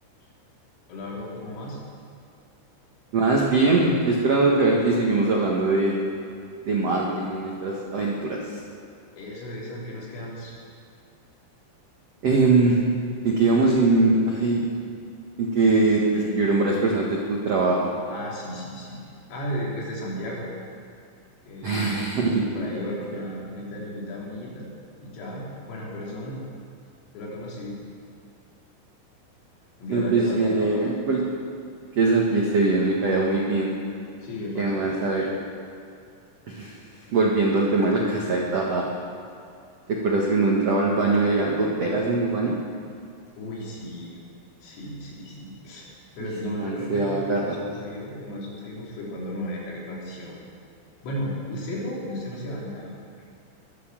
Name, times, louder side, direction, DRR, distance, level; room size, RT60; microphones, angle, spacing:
voice 1, 0.9-1.8 9.2-10.5 16.1-16.6 18.1-19.0 19.3-20.5 21.5-22.1 22.4-24.7 25.0-26.4 27.1-27.8 29.8-30.9 34.2-35.1 43.4-44.2 44.6-45.9 46.1-50.4 51.0-52.9, left 1 dB, 85° left, -5 dB, 6.1 m, -34 dB
voice 2, 3.1-5.9 6.6-8.6 12.2-12.8 13.2-14.7 15.4-17.8 21.6-22.4 29.9-31.2 31.9-33.7 34.5-35.3 36.5-36.8 37.1-38.9 39.9-42.6 46.4-47.6, right 3 dB, 90° right, -2 dB, 1.4 m, -22 dB
22.0 x 8.7 x 7.5 m, 2.4 s
omnidirectional pair, 5.6 m